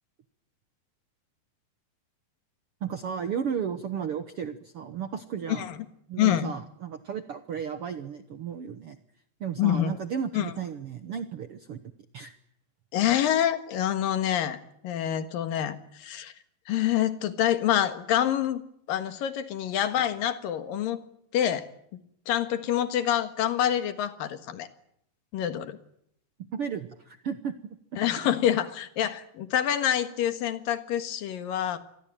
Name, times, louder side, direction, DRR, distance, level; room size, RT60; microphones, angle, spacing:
voice 1, 2.8-5.7 6.1-9.0 9.4-11.8 12.1-12.3 26.5-27.8 28.1-28.3, right 7 dB, 75° right, 10 dB, 1.3 m, -34 dB
voice 2, 6.2-6.5 9.6-10.0 10.3-10.5 12.9-16.3 16.7-18.6 18.9-21.0 21.3-21.7 22.3-24.7 25.3-25.8 28.0-31.8, left 11 dB, 70° left, 10 dB, 3.2 m, -26 dB
27.0 x 21.5 x 9.0 m, 0.73 s
omnidirectional pair, 4.3 m